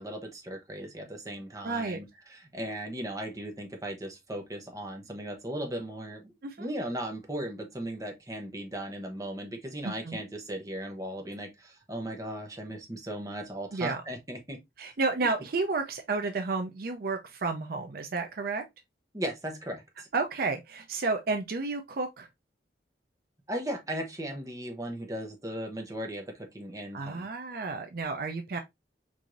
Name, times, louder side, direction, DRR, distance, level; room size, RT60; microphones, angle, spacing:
voice 1, 0.0-6.3 6.6-14.6 19.1-20.1 23.5-27.3, right 1 dB, 20° right, 0.8 m, -37 dB
voice 2, 1.6-2.0 6.4-6.7 9.8-10.2 13.7-14.0 14.8-18.6 20.1-22.3 26.9-28.6, right 3 dB, 55° right, 0.5 m, -31 dB
4.6 x 2.7 x 2.5 m
head